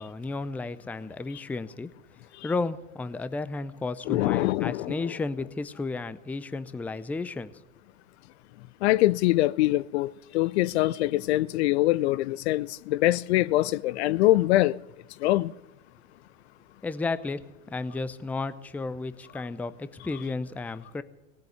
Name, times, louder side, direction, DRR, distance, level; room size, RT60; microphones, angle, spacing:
voice 1, 0.0-1.9 2.4-7.6 16.8-17.4 17.7-21.0, left 3 dB, 5° left, 0.5 m, -33 dB
voice 2, 4.1-5.0 8.8-14.8 15.2-15.5, left 16 dB, 55° left, 0.5 m, -24 dB
19.0 x 7.8 x 9.5 m
hypercardioid pair, 95°, 40 cm